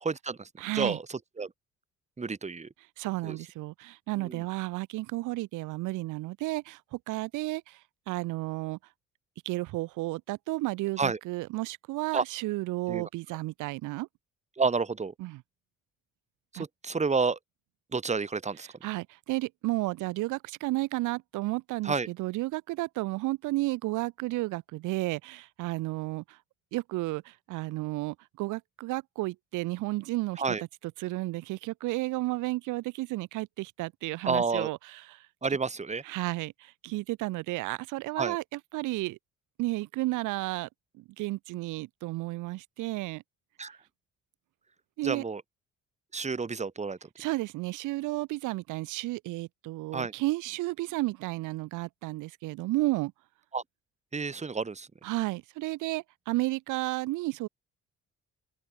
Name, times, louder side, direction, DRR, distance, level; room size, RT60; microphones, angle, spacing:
voice 1, 0.0-0.5 0.7-1.0 1.4-1.5 2.2-2.7 3.2-3.4 4.2-4.4 11.0-11.2 12.1-12.2 12.9-13.1 14.6-15.1 16.5-17.4 17.9-18.7 21.8-22.1 30.4-30.6 34.2-34.7 35.4-36.0 38.2-38.4 43.6-43.8 45.0-45.4 46.1-47.0 49.9-50.1 53.5-53.6 54.1-54.9, right 4 dB, 25° right, 1.4 m, -30 dB
voice 2, 0.6-1.0 3.0-8.8 9.4-14.1 15.2-15.4 16.5-16.6 18.6-26.4 26.7-30.4 31.0-35.3 36.0-39.2 39.6-40.7 40.9-43.2 45.0-45.2 47.2-53.1 55.0-57.5, right 20 dB, 90° right, 0.5 m, -32 dB
open air
cardioid pair, 90°, 30 cm